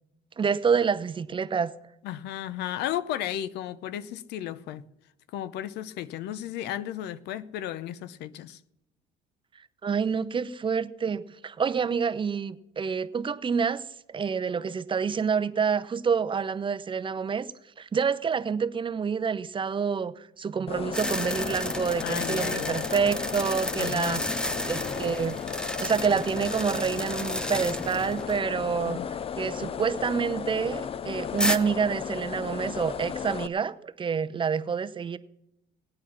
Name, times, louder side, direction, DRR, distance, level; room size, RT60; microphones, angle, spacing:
voice 1, 0.4-1.7 9.8-17.5 17.8-24.3 24.7-25.4 25.8-35.2, right 6 dB, 30° right, 0.7 m, -28 dB
voice 2, 2.0-4.8 5.3-8.6 22.0-22.9 23.8-24.2 28.8-29.1, left 11 dB, 80° left, 0.7 m, -34 dB
sound 1, 20.7-33.5, left 7 dB, 35° left, 0.5 m, -35 dB
sound 2, 20.9-28.4 28.7-28.8 31.4-31.6, equal, 5° left, 0.8 m, -32 dB
18.0 x 8.8 x 5.8 m
cardioid pair, 110°, 17 cm